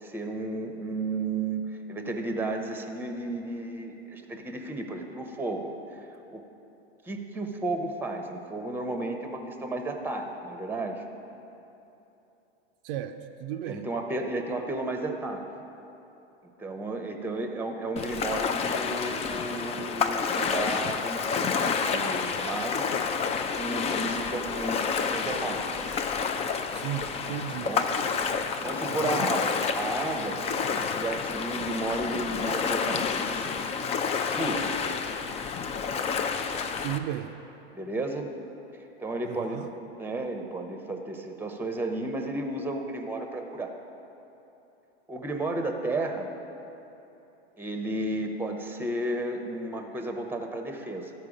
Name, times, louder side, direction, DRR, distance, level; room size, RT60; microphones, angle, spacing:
voice 1, 0.0-6.1 6.3-6.5 7.0-11.0 13.7-15.4 16.4-22.9 23.5-25.6 27.6-27.9 28.6-30.4 30.7-33.7 34.3-34.7 37.7-38.3 38.7-39.6 40.0-43.7 45.1-46.3 47.6-51.1, right 2 dB, 5° right, 4 dB, 0.8 m, -33 dB
voice 2, 12.8-13.9 26.7-27.8 28.9-29.3 36.8-37.3 39.2-39.7, right 11 dB, 55° right, 6 dB, 0.5 m, -35 dB
Ocean, 18.0-37.0, left 5 dB, 20° left, 0.4 m, -29 dB
13.5 x 4.6 x 5.0 m, 3.0 s
hypercardioid pair, 105°, 33 cm